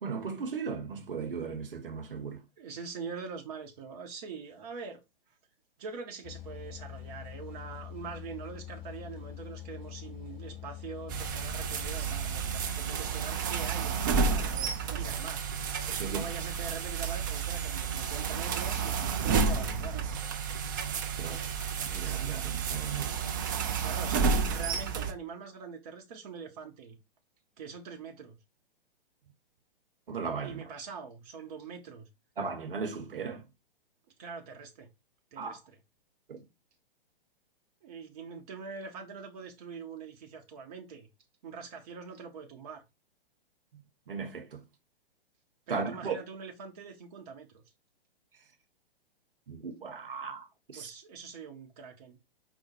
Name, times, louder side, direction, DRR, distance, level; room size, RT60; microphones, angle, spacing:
voice 1, 0.0-2.4 15.9-16.2 20.8-23.1 30.1-30.7 32.4-33.4 35.4-35.6 36.3-36.4 44.1-44.6 45.7-46.2 49.5-50.9, right 5 dB, 65° right, 0.9 m, -37 dB
voice 2, 2.6-5.0 5.8-15.4 16.1-20.0 23.8-27.0 27.6-28.4 30.4-32.1 34.2-34.9 35.3-35.8 37.8-41.1 41.4-42.8 45.7-47.6 50.7-52.2, right 5 dB, 40° right, 0.8 m, -43 dB
sound 1, 6.2-12.7, left 11 dB, 25° left, 1.9 m, -44 dB
sound 2, 11.1-25.1, right 5 dB, 20° right, 0.3 m, -31 dB
4.9 x 2.1 x 4.3 m
figure-of-eight pair, 115°, 29 cm